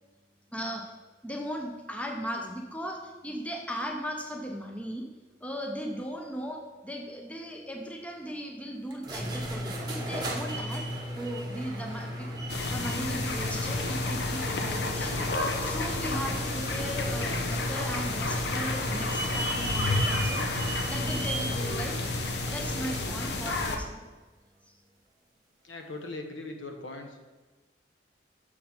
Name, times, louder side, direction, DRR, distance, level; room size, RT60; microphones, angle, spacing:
voice 1, 0.5-0.9 1.2-5.1 5.4-20.4 20.9-22.0 22.4-24.0 24.6-24.8, equal, 5° left, 2 dB, 0.6 m, -37 dB
sound 1, 8.9-23.2, equal, 20° right, 1.0 m, -35 dB
sound 2, 12.5-23.8, left 3 dB, 60° left, 0.7 m, -31 dB
Organ, 12.9-23.7, right 2 dB, 35° right, 0.5 m, -47 dB
voice 2, 25.6-27.3, left 2 dB, 85° left, 4 dB, 1.0 m, -40 dB
6.6 x 5.9 x 4.3 m, 1.2 s
head